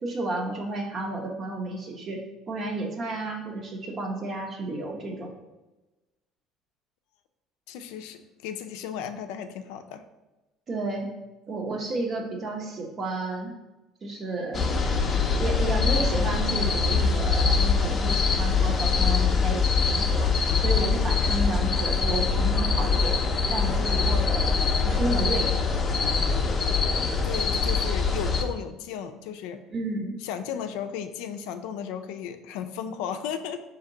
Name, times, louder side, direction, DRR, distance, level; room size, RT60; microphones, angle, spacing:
voice 1, 0.0-5.3 10.7-11.1 11.5-13.5 14.0-14.7 15.4-23.2 23.5-24.6 24.9-25.6 29.7-30.1, right 2 dB, 35° right, 2 dB, 0.8 m, -32 dB
voice 2, 7.7-10.0 27.2-29.6 30.2-33.6, left 8 dB, 85° left, 8 dB, 0.3 m, -35 dB
sound 1, 14.5-28.4, left 4 dB, 30° left, 0.5 m, -23 dB
4.4 x 2.9 x 3.8 m, 1.1 s
cardioid pair, 120°, 0 cm